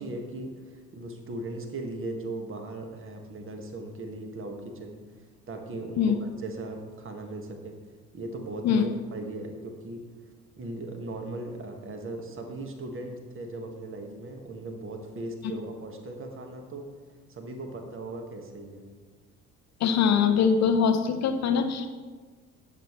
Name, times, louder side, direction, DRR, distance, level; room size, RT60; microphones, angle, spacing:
voice 1, 0.0-5.0 5.5-7.8 8.1-10.1 10.6-16.9 17.3-18.8, right 2 dB, 30° right, 4 dB, 1.8 m, -38 dB
voice 2, 19.8-21.9, left 6 dB, 40° left, 7 dB, 1.0 m, -22 dB
18.0 x 8.0 x 3.2 m, 1.4 s
figure-of-eight pair, 60°, 43 cm